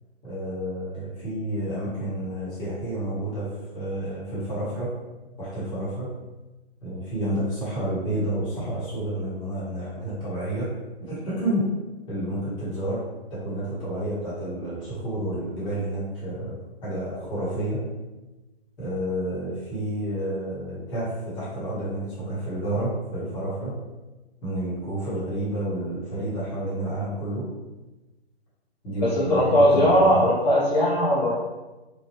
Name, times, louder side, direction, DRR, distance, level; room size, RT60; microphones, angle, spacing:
voice 1, 0.2-4.9 5.4-6.1 6.8-10.7 11.0-11.7 12.1-13.0 13.3-17.8 18.8-23.7 24.4-27.5 28.8-30.3, right 1 dB, 15° left, -9 dB, 1.0 m, -30 dB
voice 2, 29.0-31.4, equal, 40° left, -8 dB, 0.8 m, -19 dB
3.1 x 2.1 x 3.0 m, 1.1 s
figure-of-eight pair, 135°, 32 cm